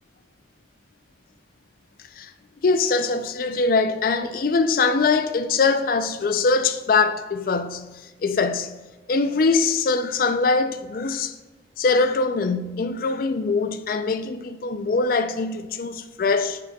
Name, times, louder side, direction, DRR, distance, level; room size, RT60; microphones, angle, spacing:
voice 1, 2.6-7.8 8.2-8.7 9.1-11.3 11.8-16.6, left 4 dB, 50° left, 0.3 m, -22 dB
7.2 x 6.0 x 2.3 m
head